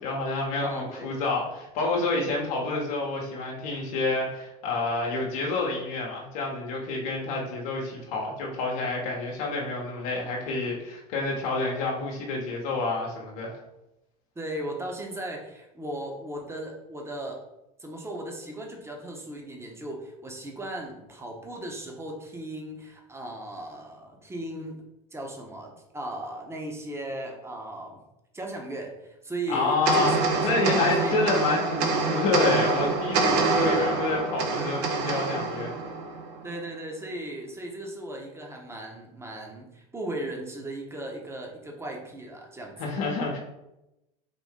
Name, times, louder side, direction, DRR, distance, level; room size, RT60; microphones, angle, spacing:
voice 1, 0.0-13.6 29.5-30.2 30.4-35.7 42.8-43.4, left 3 dB, 70° left, -1 dB, 0.9 m, -28 dB
voice 2, 0.6-1.2 14.4-17.4 17.8-24.8 25.1-28.0 28.3-30.3 30.7-31.2 33.2-33.9 36.4-42.9, right 1 dB, 15° right, 1 dB, 0.9 m, -37 dB
sound 1, 29.9-36.5, right 4 dB, 65° right, 0.8 m, -26 dB
4.0 x 2.6 x 3.6 m, 0.91 s
hypercardioid pair, 90°, 19 cm